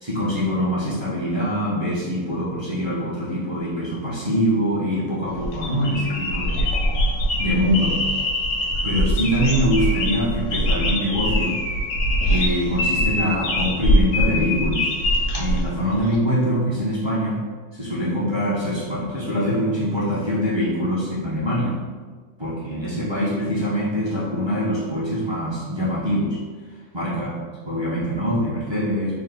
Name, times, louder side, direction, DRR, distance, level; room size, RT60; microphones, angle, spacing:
voice 1, 0.0-6.7 7.4-8.0 8.8-11.6 12.3-14.9 15.4-17.4 17.7-21.8 22.4-26.4 26.9-27.3 27.7-29.2, equal, 45° right, -8 dB, 0.3 m, -24 dB
sound 1, 5.3-16.2, left 1 dB, 90° left, 1.2 m, -23 dB
3.6 x 2.1 x 3.4 m, 1.5 s
omnidirectional pair, 1.6 m